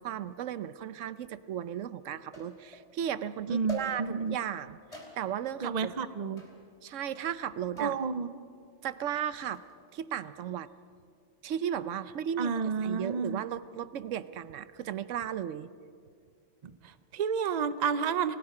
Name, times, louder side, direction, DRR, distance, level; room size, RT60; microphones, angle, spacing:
voice 1, 0.0-4.8 5.2-5.9 6.8-8.0 8.8-9.6 9.9-10.7 11.4-15.7, right 9 dB, 85° right, 14 dB, 1.0 m, -35 dB
sound 1, 1.2-1.3 2.3-2.9 3.7-4.3 4.9-5.5 6.4-6.7 7.8-8.1 9.3-9.7, equal, 30° left, 3.3 m, -45 dB
voice 2, 3.5-4.4 5.6-6.5 7.8-8.3 12.4-13.4 16.6-18.4, right 6 dB, 40° right, 12 dB, 0.7 m, -31 dB
29.5 x 20.0 x 4.9 m, 2.2 s
omnidirectional pair, 1.3 m